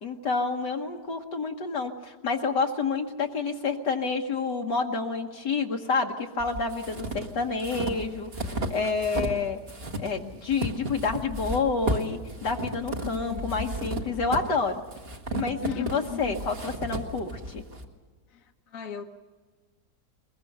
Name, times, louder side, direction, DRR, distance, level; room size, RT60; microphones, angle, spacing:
voice 1, 0.0-9.6 10.0-14.8 15.3-17.6, left 4 dB, 80° left, 1.8 m, -29 dB
sound 1, 6.4-9.4 9.7-17.8, right 2 dB, 35° right, 1.9 m, -34 dB
voice 2, 13.1-13.7 15.6-16.4 18.3-19.0, left 8 dB, 55° left, 1.2 m, -36 dB
22.5 x 22.0 x 6.6 m
omnidirectional pair, 1.8 m